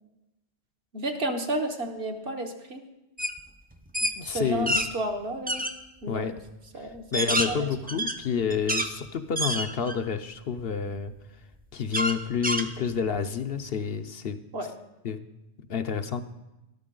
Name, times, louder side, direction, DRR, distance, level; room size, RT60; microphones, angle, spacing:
voice 1, 0.9-2.8 4.2-5.7 6.0-6.3 6.7-7.7 14.5-14.7, right 1 dB, 65° right, 3 dB, 1.4 m, -32 dB
sound 1, 3.2-3.4 3.7-4.9 5.5-5.7 6.4-6.5 6.9-8.9 9.4-10.1 10.6-10.7 11.9-13.2, right 1 dB, 15° right, 0.3 m, -28 dB
voice 2, 4.1-4.8 6.1-6.4 6.8-11.1 11.7-14.4 15.0-15.2 15.7-16.2, left 6 dB, 60° left, 8 dB, 0.8 m, -29 dB
13.0 x 12.0 x 3.8 m, 0.96 s
omnidirectional pair, 1.2 m